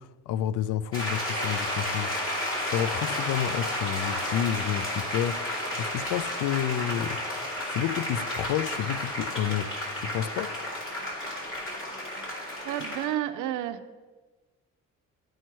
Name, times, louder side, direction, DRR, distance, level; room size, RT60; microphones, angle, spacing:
voice 1, 0.0-2.1 2.7-7.2 7.7-10.5, left 10 dB, 85° left, 0.5 m, -30 dB
sound 1, 0.9-13.1, left 1 dB, 45° left, 2.7 m, -32 dB
voice 2, 12.6-13.8, right 12 dB, 90° right, 0.5 m, -30 dB
12.5 x 4.5 x 4.6 m
cardioid pair, 90°, 30 cm